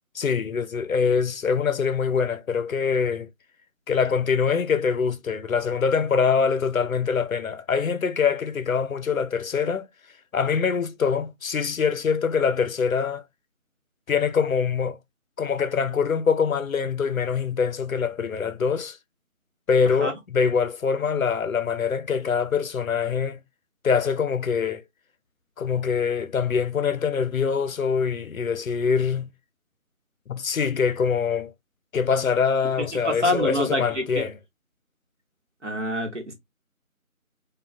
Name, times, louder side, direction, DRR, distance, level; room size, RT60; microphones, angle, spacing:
voice 1, 0.1-3.3 3.9-9.9 10.3-13.2 14.1-15.0 15.4-19.0 19.7-23.4 23.8-24.8 25.6-29.3 30.3-31.5 31.9-34.3, left 6 dB, 75° left, 0.5 m, -24 dB
voice 2, 32.9-34.2 35.6-36.3, left 1 dB, 55° right, 1.0 m, -26 dB
3.1 x 2.2 x 2.5 m
figure-of-eight pair, 175°, 43 cm